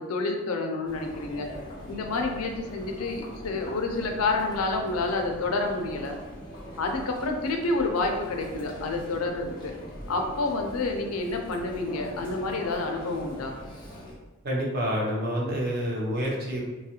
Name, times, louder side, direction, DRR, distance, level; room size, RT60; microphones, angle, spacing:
voice 1, 0.0-1.5 1.9-6.2 6.8-9.7 10.1-13.6, left 3 dB, 75° left, 4 dB, 0.4 m, -29 dB
Chatter, 0.8-14.1, equal, 20° left, 0.5 m, -42 dB
voice 2, 14.4-16.6, equal, 45° right, -2 dB, 0.6 m, -28 dB
2.9 x 2.3 x 2.8 m, 1.2 s
head